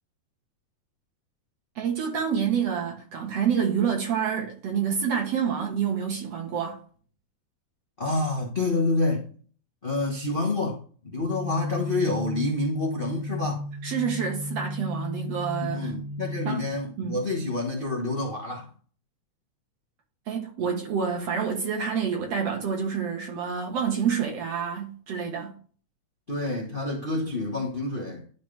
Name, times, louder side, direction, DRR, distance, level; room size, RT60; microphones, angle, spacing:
voice 1, 1.8-6.8 13.8-15.9 16.4-16.7 17.0-17.2 20.3-25.5, right 7 dB, 65° right, 2.3 m, -28 dB
voice 2, 8.0-9.3 9.8-10.8 11.0-13.6 15.6-18.7 26.3-28.3, left 2 dB, 70° left, 0.5 m, -28 dB
sound 1, 11.2-16.7, left 2 dB, 50° left, 1.6 m, -34 dB
11.5 x 4.1 x 3.3 m
omnidirectional pair, 3.3 m